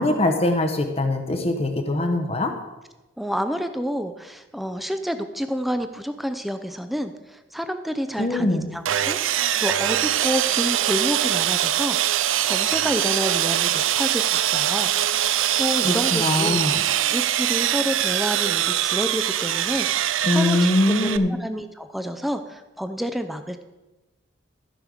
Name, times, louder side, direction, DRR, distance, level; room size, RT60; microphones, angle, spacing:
voice 1, 0.0-2.5 8.2-8.7 15.8-16.8 20.2-21.4, left 1 dB, 30° left, 5 dB, 0.9 m, -22 dB
voice 2, 3.2-14.9 15.2-16.6 17.1-23.6, equal, ahead, 8 dB, 0.6 m, -29 dB
Sawing, 8.9-21.2, right 12 dB, 80° right, 0.5 m, -23 dB
14.0 x 5.4 x 6.4 m, 1.1 s
head